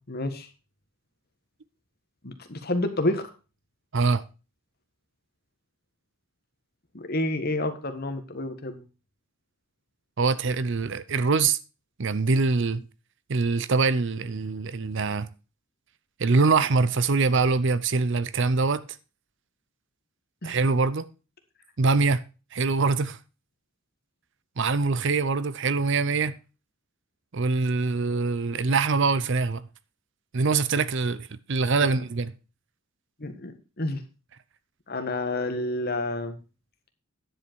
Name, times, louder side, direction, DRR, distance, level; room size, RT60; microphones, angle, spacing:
voice 1, 0.1-0.5 2.2-3.3 6.9-8.8 20.4-20.6 31.8-31.9 33.2-34.0 34.9-36.4, left 2 dB, 50° left, 1.6 m, -29 dB
voice 2, 3.9-4.2 10.2-11.6 12.0-12.8 13.3-15.3 16.2-18.8 20.4-21.1 21.8-22.2 22.5-23.2 24.6-26.3 27.3-29.6 30.3-32.3, right 4 dB, 60° right, 0.7 m, -24 dB
10.0 x 7.8 x 4.6 m
head